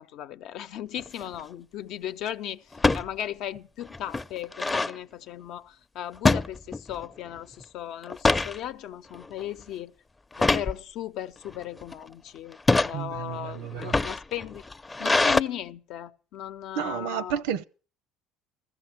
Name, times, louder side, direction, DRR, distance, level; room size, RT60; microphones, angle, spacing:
voice 1, 0.0-9.9 10.4-14.6 15.0-17.4, left 11 dB, 65° left, 0.8 m, -37 dB
sound 1, 1.0-1.3 2.7-3.1 3.6-3.7 3.9-5.0 6.2-7.1 7.4-7.6 8.0-8.6 9.1-9.4 10.3-10.7 11.5-11.9 12.5-12.9 13.7-15.4, left 3 dB, 20° left, 0.7 m, -24 dB
voice 2, 12.9-14.0 16.8-17.6, right 9 dB, 80° right, 0.8 m, -31 dB
15.5 x 13.5 x 6.1 m
supercardioid pair, 80°, 0 cm